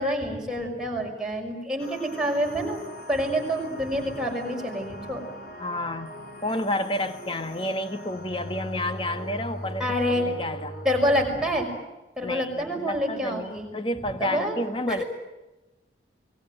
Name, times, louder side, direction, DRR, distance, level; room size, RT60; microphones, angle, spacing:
voice 1, 0.0-2.8 3.1-5.2 9.8-10.3 10.8-11.7 12.2-13.7 14.2-14.6 14.9-15.0, equal, 5° right, 0 dB, 6.0 m, -27 dB
sound 1, 1.8-11.3, equal, 55° left, 4.7 m, -39 dB
voice 2, 5.6-6.1 6.4-10.8 12.2-15.0, left 1 dB, 30° left, 9 dB, 1.5 m, -30 dB
29.0 x 20.0 x 9.1 m, 1.1 s
head